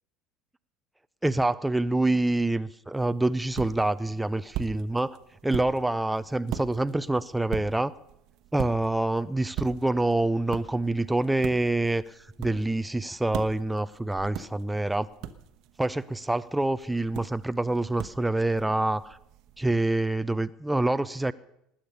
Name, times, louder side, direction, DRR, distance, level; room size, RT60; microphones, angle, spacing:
voice 1, 1.2-5.2 5.4-7.9 8.5-12.0 12.4-15.1 15.8-19.2 19.6-21.3, right 2 dB, 5° right, 14 dB, 0.4 m, -26 dB
sound 1, 2.9-19.7, right 10 dB, 50° right, 1.0 m, -41 dB
19.5 x 8.7 x 6.6 m, 0.80 s
figure-of-eight pair, 70°, 0 cm